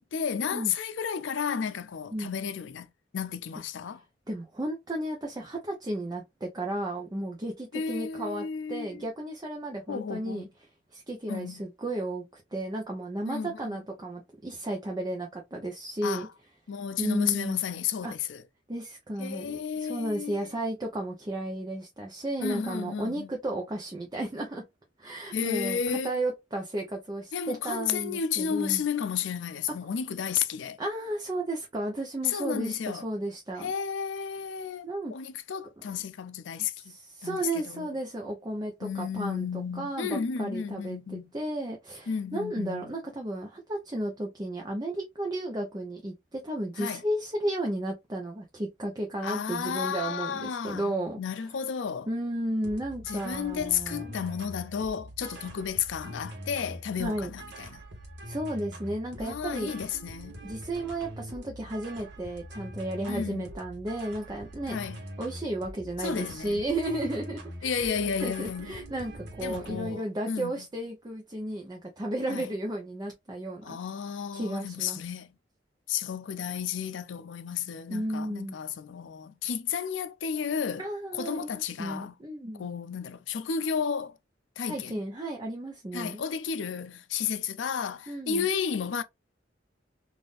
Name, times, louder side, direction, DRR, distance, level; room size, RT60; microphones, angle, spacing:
voice 1, 0.0-2.9 3.1-4.0 7.7-9.0 9.9-10.5 11.3-11.7 13.3-13.8 16.0-16.3 16.7-18.4 19.2-20.5 22.4-23.3 25.3-26.1 27.3-30.8 32.2-33.0 33.6-36.9 37.2-37.9 38.8-41.3 42.1-42.9 46.8-47.0 49.2-52.1 53.0-57.8 59.2-60.4 63.1-63.5 64.7-65.0 66.0-66.7 67.6-68.8 69.4-70.6 72.3-72.5 73.6-75.3 75.9-80.8 81.1-82.1 82.6-84.2 84.6-85.0 85.9-89.0, left 7 dB, 75° left, 0.5 m, -32 dB
voice 2, 4.3-10.5 10.9-16.3 17.0-17.6 18.0-18.1 18.7-24.6 25.0-28.8 30.8-33.7 34.8-35.1 36.6-51.2 52.1-54.0 57.0-57.3 58.3-59.7 60.4-64.8 65.2-73.8 74.3-75.0 77.9-78.6 80.8-82.7 84.7-86.2 88.1-88.5, right 1 dB, 20° right, 0.7 m, -33 dB
sound 1, 52.6-70.0, right 1 dB, 70° right, 1.2 m, -43 dB
3.6 x 2.6 x 2.4 m
head